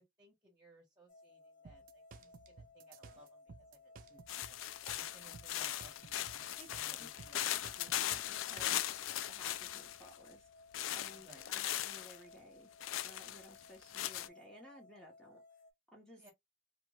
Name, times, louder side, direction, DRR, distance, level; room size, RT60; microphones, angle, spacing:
voice 1, 0.0-4.2 4.5-4.6 4.9-7.4 11.1-11.5 16.2-16.3, right 1 dB, 20° right, 0.9 m, -63 dB
sound 1, 1.1-15.7, left 3 dB, 45° left, 0.6 m, -60 dB
sound 2, 1.6-8.8, right 5 dB, 45° right, 0.3 m, -56 dB
sound 3, 4.3-10.2 10.7-12.2 12.8-14.3, left 12 dB, 85° left, 0.3 m, -39 dB
voice 2, 6.6-7.1 7.5-8.8 9.3-10.5 10.9-12.7 13.0-15.4 15.9-16.2, equal, 5° left, 0.7 m, -58 dB
2.8 x 2.3 x 2.9 m
head